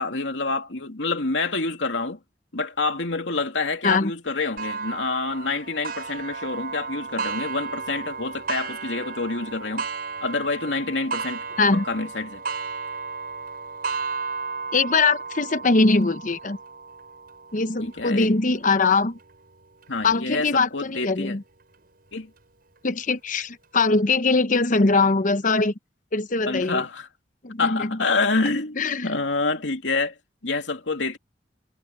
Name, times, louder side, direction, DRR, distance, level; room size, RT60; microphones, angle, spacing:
voice 1, 0.0-2.2 2.5-9.9 10.2-11.4 11.7-12.4 17.8-18.3 19.9-21.4 22.1-22.3 26.5-27.1 27.6-28.8 29.0-30.1 30.4-31.2, left 3 dB, 90° left, 2.7 m, -27 dB
Clock, 4.6-19.9 20.5-20.6 21.1-21.2 22.2-22.3, right 5 dB, 55° right, 7.1 m, -34 dB
voice 2, 14.7-16.6 17.5-19.2 20.0-21.4 22.8-25.7 26.1-26.8 27.4-27.9 28.8-29.1, left 3 dB, 45° left, 0.9 m, -21 dB
head